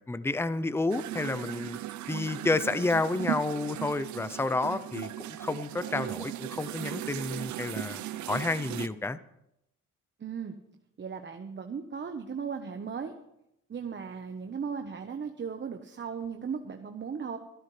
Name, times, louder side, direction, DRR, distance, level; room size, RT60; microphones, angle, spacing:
voice 1, 0.0-1.8 2.1-5.1 5.4-8.0 8.3-9.2, left 3 dB, 10° left, 14 dB, 0.6 m, -30 dB
sound 1, 0.9-8.9, right 13 dB, 70° right, 0.7 m, -37 dB
voice 2, 10.2-10.5 11.0-13.1 13.7-17.4, right 6 dB, 40° right, 5 dB, 1.2 m, -37 dB
24.0 x 12.5 x 3.3 m, 0.82 s
cardioid pair, 90°, 30 cm